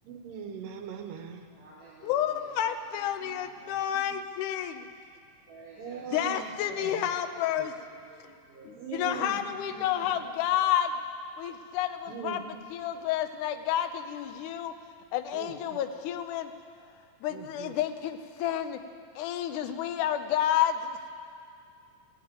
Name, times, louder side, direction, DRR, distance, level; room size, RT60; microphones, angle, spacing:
voice 1, 0.1-1.5 3.2-3.3 3.9-4.2 5.8-7.1 7.6-7.7 8.8-9.4 9.7-10.2 12.1-12.4 15.3-15.8 17.3-17.7, right 7 dB, 85° right, 5 dB, 2.7 m, -41 dB
voice 2, 1.5-2.7 3.2-3.7 5.5-7.0 7.4-8.7 9.0-9.4 9.9-10.1, right 2 dB, 50° right, -13 dB, 4.7 m, -52 dB
voice 3, 2.0-4.9 6.1-7.7 8.6-10.9 11.4-12.4 12.7-14.7 15.1-16.5 17.2-18.8 19.2-21.1, left 10 dB, 75° left, 8 dB, 2.1 m, -30 dB
17.0 x 8.5 x 9.1 m, 2.3 s
omnidirectional pair, 3.9 m